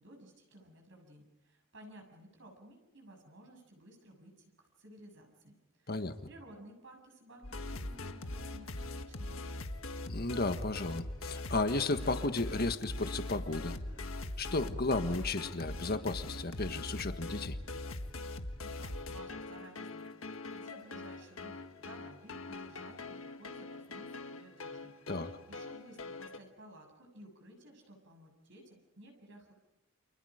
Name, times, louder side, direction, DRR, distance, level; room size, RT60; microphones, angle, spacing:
voice 1, 0.0-9.6 18.6-29.5, right 1 dB, 60° right, 3 dB, 7.1 m, -56 dB
sound 1, 7.4-26.4, left 2 dB, 70° left, 1.6 m, -42 dB
voice 2, 10.1-13.8 14.4-17.6 25.1-25.3, left 2 dB, 45° left, 8 dB, 1.6 m, -34 dB
30.0 x 27.5 x 5.1 m, 0.96 s
head